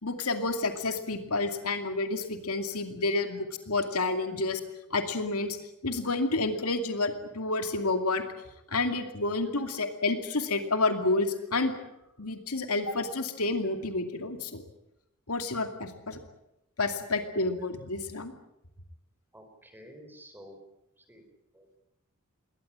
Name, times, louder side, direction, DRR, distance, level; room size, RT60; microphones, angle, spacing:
voice 1, 0.0-4.6 4.9-5.6 5.8-8.2 8.7-11.7 12.2-14.6 15.3-16.2 16.8-18.3, left 3 dB, 80° left, 7 dB, 2.4 m, -29 dB
voice 2, 19.3-20.6 21.0-21.2 21.5-21.8, equal, 10° right, 6 dB, 4.3 m, -51 dB
21.5 x 18.5 x 8.8 m, 0.87 s
head